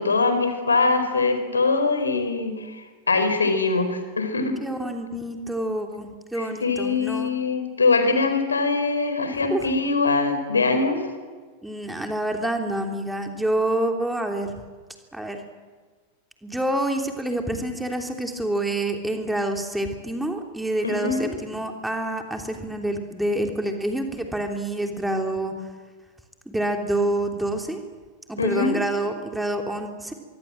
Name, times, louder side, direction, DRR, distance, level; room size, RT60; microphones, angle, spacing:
voice 1, 0.0-4.5 6.3-11.0 20.8-21.3 28.4-28.8, left 3 dB, 75° left, 8 dB, 4.5 m, -23 dB
voice 2, 4.6-7.3 9.5-9.7 11.6-14.5 15.1-15.4 16.4-25.5 26.5-27.8 28.3-30.1, right 1 dB, 5° right, 3 dB, 3.3 m, -27 dB
24.5 x 24.5 x 7.7 m, 1.4 s
figure-of-eight pair, 90°, 0 cm